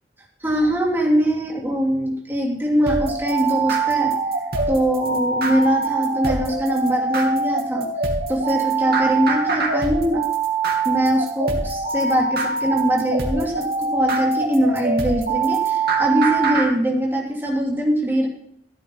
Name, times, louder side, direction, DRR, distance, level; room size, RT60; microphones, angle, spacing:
voice 1, 0.4-4.1 4.7-7.9 8.3-10.2 10.8-18.3, equal, 15° right, -1 dB, 2.9 m, -22 dB
sound 1, 2.8-16.7, right 4 dB, 60° right, 2.7 m, -23 dB
15.0 x 8.9 x 4.0 m, 0.67 s
head